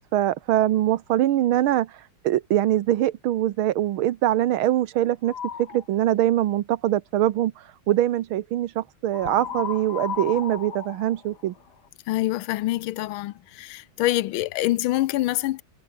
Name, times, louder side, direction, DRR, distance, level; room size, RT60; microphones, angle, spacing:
voice 1, 0.0-1.9 2.2-5.3 5.6-7.5 7.9-11.5, right 13 dB, 85° right, 1.7 m, -23 dB
sound 1, 5.3-5.8 9.1-11.9, left 7 dB, 55° left, 2.1 m, -34 dB
voice 2, 12.1-15.6, left 16 dB, 85° left, 1.5 m, -25 dB
omnidirectional pair, 2.2 m